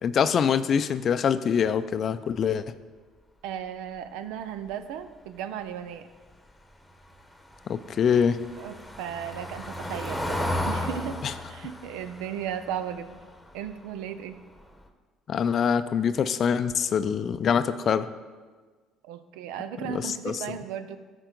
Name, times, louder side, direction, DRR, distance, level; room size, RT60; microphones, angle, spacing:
voice 1, 0.0-2.7 7.7-8.4 11.2-11.3 15.3-18.1 19.9-20.4, left 7 dB, 50° left, 13 dB, 0.4 m, -24 dB
voice 2, 3.4-6.1 8.6-13.2 13.5-14.4 19.0-21.0, right 9 dB, 80° right, 11 dB, 0.5 m, -36 dB
Car passing by / Engine, 7.1-14.0 14.3-14.6 14.9-15.0, left 1 dB, 10° left, 1.0 m, -34 dB
13.0 x 4.6 x 3.9 m, 1.4 s
supercardioid pair, 70°, 0 cm